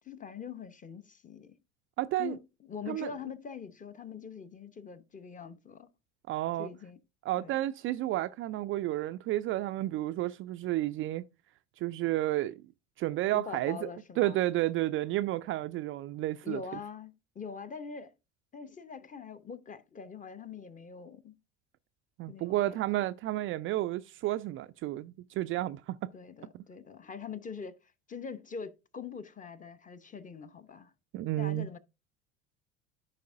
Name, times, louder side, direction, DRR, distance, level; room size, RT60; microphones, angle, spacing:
voice 1, 0.0-1.6 2.2-5.9 6.6-7.0 7.4-7.5 13.3-14.4 16.4-18.1 18.5-21.3 22.3-22.8 26.1-27.8 28.1-30.9 31.4-31.8, left 6 dB, 20° left, 0.8 m, -43 dB
voice 2, 2.0-2.4 2.9-3.1 6.3-6.7 7.3-11.2 11.8-12.6 13.0-13.9 14.2-16.6 22.2-26.1 26.5-26.6 31.1-31.7, right 15 dB, 35° right, 0.4 m, -31 dB
14.0 x 5.3 x 2.5 m
figure-of-eight pair, 65°, 37 cm